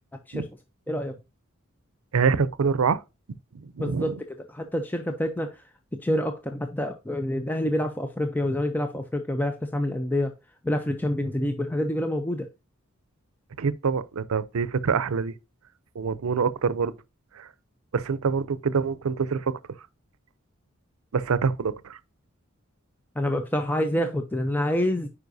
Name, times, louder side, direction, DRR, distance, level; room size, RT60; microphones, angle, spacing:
voice 1, 2.1-3.0 3.5-4.2 13.6-15.3 15.9-16.9 17.3-17.5 17.9-19.5 21.1-22.0, right 5 dB, 90° right, 0.5 m, -25 dB
voice 2, 3.8-4.1 4.5-5.6 5.9-10.3 10.6-12.5 23.2-25.1, left 1 dB, 10° left, 0.4 m, -27 dB
9.4 x 4.9 x 2.6 m
head